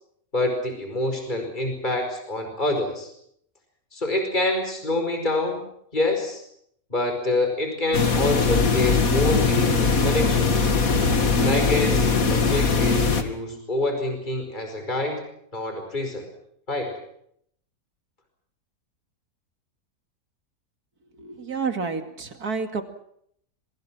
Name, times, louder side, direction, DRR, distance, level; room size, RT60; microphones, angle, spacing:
voice 1, 0.3-3.1 3.9-5.6 5.9-6.4 6.9-10.7 11.3-15.2 15.5-16.3 16.7-17.0, left 2 dB, 30° left, 5 dB, 5.2 m, -26 dB
sound 1, 7.9-13.2, left 4 dB, 65° left, 2.5 m, -20 dB
voice 2, 21.2-22.8, right 5 dB, 85° right, 7 dB, 2.8 m, -29 dB
26.5 x 24.0 x 6.1 m, 0.70 s
omnidirectional pair, 1.6 m